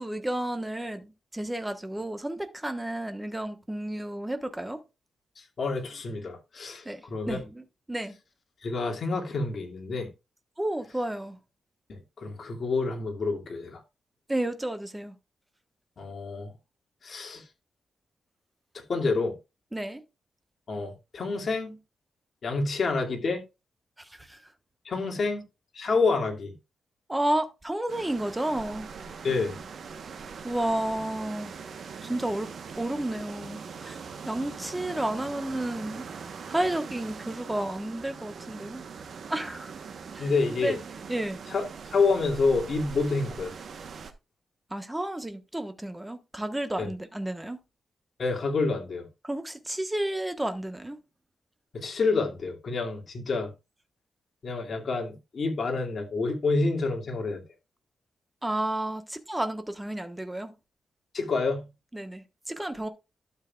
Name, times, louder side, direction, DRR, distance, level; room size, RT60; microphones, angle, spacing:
voice 1, 0.0-4.8 6.8-8.1 10.6-11.4 14.3-15.1 19.7-20.0 24.0-24.5 25.2-25.3 27.1-28.9 30.4-31.5 32.0-32.5 32.8-36.1 36.5-38.8 39.3-39.7 40.1-40.3 40.6-40.8 41.1-41.4 44.7-47.6 49.2-51.0 58.4-60.5 61.9-62.9, right 1 dB, 10° right, 1.1 m, -31 dB
voice 2, 5.4-7.4 8.6-10.1 11.9-13.8 16.0-16.5 17.0-17.4 18.9-19.4 20.7-21.8 22.4-23.4 24.8-25.4 25.8-26.5 29.2-29.6 40.2-40.8 41.5-43.5 46.8-46.9 48.2-49.1 51.7-53.5 54.4-57.4 61.1-61.7, left 3 dB, 50° left, 2.4 m, -28 dB
sound 1, 27.9-44.1, right 5 dB, 60° right, 1.1 m, -42 dB
12.0 x 7.4 x 2.4 m
wide cardioid pair, 140°, 0 cm